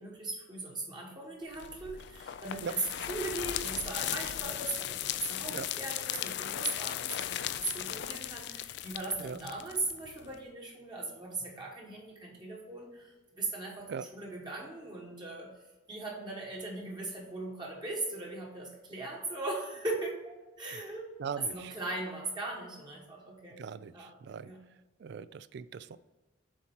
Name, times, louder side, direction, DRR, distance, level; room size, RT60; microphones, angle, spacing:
voice 1, 0.0-13.9 14.1-15.5 15.9-21.1 21.4-23.6 23.9-24.1 24.4-24.6, right 2 dB, 20° right, -2 dB, 1.1 m, -38 dB
sound 1, 1.5-10.4, left 11 dB, 60° left, 0.3 m, -37 dB
voice 2, 21.2-21.7 23.6-24.5 25.0-26.0, right 6 dB, 60° right, 16 dB, 0.3 m, -40 dB
7.3 x 4.2 x 4.4 m, 1.1 s
head